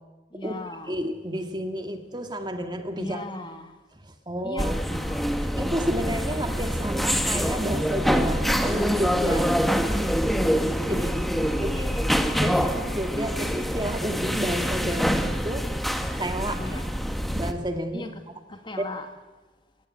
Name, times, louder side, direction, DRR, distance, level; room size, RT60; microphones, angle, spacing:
voice 1, 0.3-1.0 3.0-3.7 4.4-5.5 11.4-12.4 16.6-16.9 17.9-18.2 18.5-19.1, left 2 dB, 25° left, 2.1 m, -39 dB
voice 2, 0.9-3.2 4.0-4.8 5.6-9.5 10.9-11.2 11.6-11.9 12.4-15.7 16.2-16.8 17.3-18.1, equal, 25° right, 1.9 m, -31 dB
sound 1, 4.6-17.5, equal, ahead, 1.5 m, -25 dB
28.5 x 17.5 x 9.7 m
head